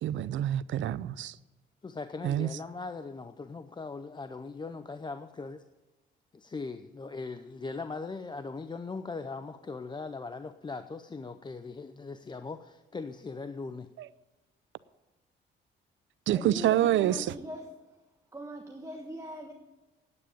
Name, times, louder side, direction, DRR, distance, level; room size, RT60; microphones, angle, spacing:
voice 1, 0.0-1.4 2.2-2.5 14.0-14.1 16.3-17.3, right 12 dB, 70° right, 0.5 m, -27 dB
voice 2, 1.8-5.6 6.3-13.9, left 4 dB, 20° left, 0.6 m, -40 dB
voice 3, 16.3-17.7 18.3-19.5, right 1 dB, 15° right, 1.4 m, -41 dB
9.7 x 8.9 x 8.5 m
cardioid pair, 90°, 20 cm